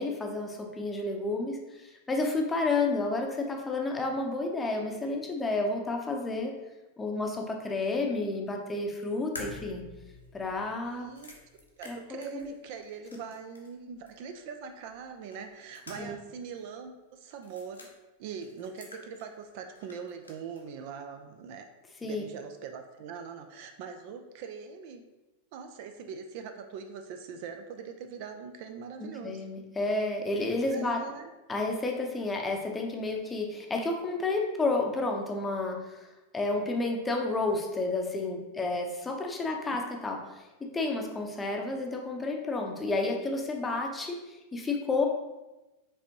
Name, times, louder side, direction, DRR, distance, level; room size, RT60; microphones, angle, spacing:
voice 1, 0.0-6.5 7.0-9.8 10.3-11.1 11.9-12.5 16.0-16.1 22.0-22.2 29.2-31.0 31.5-36.1 36.3-45.1, left 3 dB, 15° left, 1 dB, 0.6 m, -31 dB
sound 1, 9.3-13.8 14.1-14.2 15.3-16.3 16.6-16.7 17.4-17.9 18.4-19.5 19.7-20.6, left 2 dB, 80° left, 0.8 m, -48 dB
voice 2, 10.9-11.3 11.8-17.9 18.2-21.7 22.0-25.0 25.5-29.4 30.7-31.3 39.7-39.8, right 6 dB, 45° right, 6 dB, 0.3 m, -42 dB
5.0 x 3.4 x 2.9 m, 1.0 s
figure-of-eight pair, 90°, 0 cm